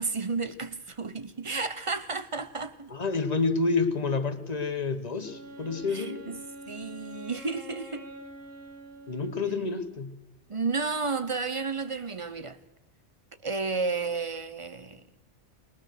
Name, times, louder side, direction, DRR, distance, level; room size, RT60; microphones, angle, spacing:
voice 1, 0.0-2.9 5.9-6.4 6.7-8.1 10.5-12.6 13.4-15.0, right 4 dB, 30° right, 0.7 m, -32 dB
voice 2, 2.9-6.2 9.1-10.1, left 4 dB, 35° left, 1.2 m, -29 dB
Wind instrument woodwind instrument, 5.2-10.0, right 1 dB, 50° right, 2.2 m, -45 dB
21.5 x 20.0 x 6.6 m
omnidirectional pair, 1.2 m